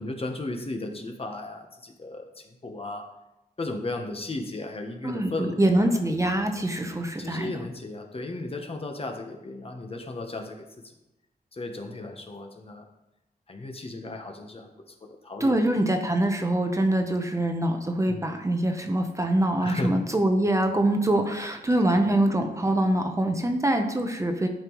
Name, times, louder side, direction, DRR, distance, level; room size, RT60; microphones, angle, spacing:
voice 1, 0.0-3.1 3.6-5.9 7.2-10.7 11.5-12.9 13.5-15.6 18.1-18.3 19.6-19.9 21.9-22.0, left 2 dB, 35° left, 4 dB, 0.9 m, -35 dB
voice 2, 5.0-7.5 15.4-24.5, right 1 dB, 20° right, 4 dB, 0.7 m, -24 dB
12.0 x 5.4 x 3.0 m, 0.93 s
wide cardioid pair, 130°, 16 cm